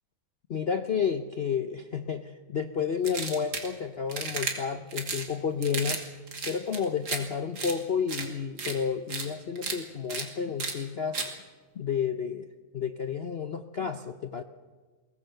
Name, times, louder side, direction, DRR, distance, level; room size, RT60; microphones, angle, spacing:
voice 1, 0.5-6.0 6.4-11.2 11.8-12.5 12.7-14.4, left 7 dB, 60° left, 9 dB, 0.6 m, -31 dB
sound 1, 3.0-3.7 4.1-4.5 4.9-5.3 5.6-6.0 6.3-7.2 7.6-7.7 8.1-8.3 8.6-8.7 9.1-9.3 9.6-9.8 10.1-10.2 10.6-10.7 11.1-11.3, right 4 dB, 55° right, 2.9 m, -33 dB
22.5 x 19.0 x 6.7 m, 1.4 s
omnidirectional pair, 2.1 m